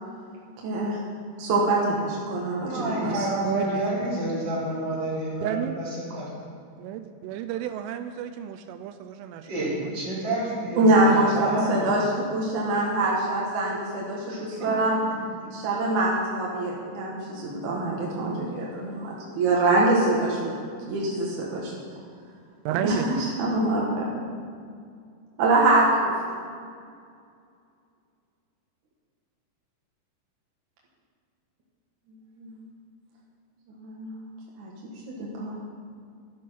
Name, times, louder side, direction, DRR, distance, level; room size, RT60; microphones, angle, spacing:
voice 1, 0.6-1.0 1.4-3.3 10.8-15.0 15.5-20.5 20.9-21.7 22.8-24.1 25.4-26.1 32.4-32.6 33.8-34.2 34.6-34.7 35.1-35.6, right 2 dB, 60° right, -4 dB, 2.1 m, -24 dB
voice 2, 2.6-6.3 9.4-11.9 14.3-14.7, right 1 dB, 25° right, -7 dB, 4.3 m, -29 dB
voice 3, 3.4-3.8 5.4-5.8 6.8-9.5 9.8-9.9 22.7-23.1, right 10 dB, 85° right, 8 dB, 3.1 m, -31 dB
11.5 x 11.5 x 5.6 m, 2.3 s
omnidirectional pair, 5.6 m